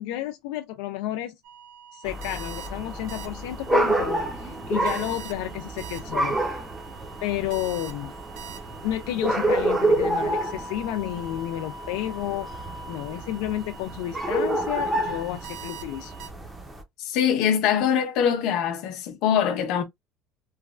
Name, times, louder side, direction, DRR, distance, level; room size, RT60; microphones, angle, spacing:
voice 1, 0.0-1.4 1.9-6.4 7.2-8.1 8.8-12.5 12.9-16.1, left 13 dB, 90° left, 0.3 m, -31 dB
sound 1, 1.4-16.3, right 4 dB, 65° right, 0.7 m, -43 dB
sound 2, 2.0-16.8, right 1 dB, 10° right, 0.6 m, -29 dB
voice 2, 17.0-19.8, left 8 dB, 55° left, 0.8 m, -23 dB
3.2 x 2.3 x 2.4 m
cardioid pair, 170°, 0 cm